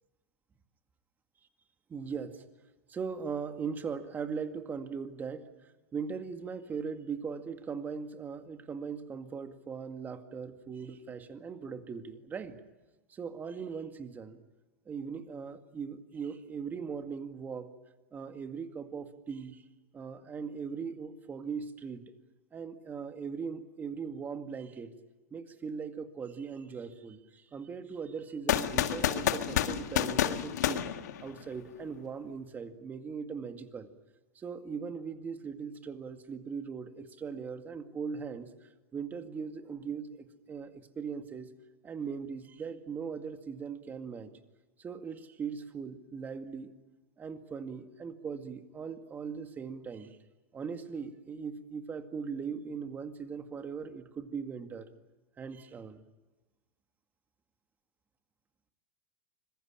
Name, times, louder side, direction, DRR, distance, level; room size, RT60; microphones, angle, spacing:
voice 1, 1.9-2.4 2.9-5.5 5.9-12.6 13.1-14.4 14.9-17.7 18.1-19.6 19.9-22.0 22.5-24.9 25.3-30.9 31.2-33.9 34.4-41.5 41.8-44.3 44.8-46.7 47.2-50.2 50.5-54.9 55.4-56.0, right 6 dB, 20° right, 7 dB, 2.1 m, -39 dB
sound 1, 28.5-31.7, left 11 dB, 85° left, 1.8 m, -29 dB
25.5 x 22.0 x 8.9 m, 1.1 s
supercardioid pair, 135°, 9 cm